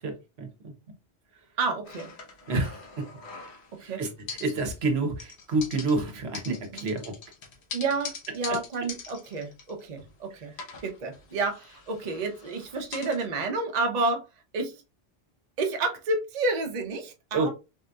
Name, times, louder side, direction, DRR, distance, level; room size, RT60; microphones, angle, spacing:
voice 1, 0.0-0.7 2.5-3.1 3.8-7.1 17.3-17.5, right 3 dB, 85° right, 1.1 m, -29 dB
voice 2, 1.6-2.1 3.8-4.0 6.7-6.9 7.7-10.5 10.8-14.2 14.5-14.7 15.6-17.5, right 3 dB, 45° right, 0.7 m, -30 dB
sound 1, 1.8-3.9 4.3-4.9 5.2-10.2 10.5-13.3, left 5 dB, 85° left, 1.1 m, -43 dB
3.6 x 2.6 x 2.2 m
omnidirectional pair, 1.1 m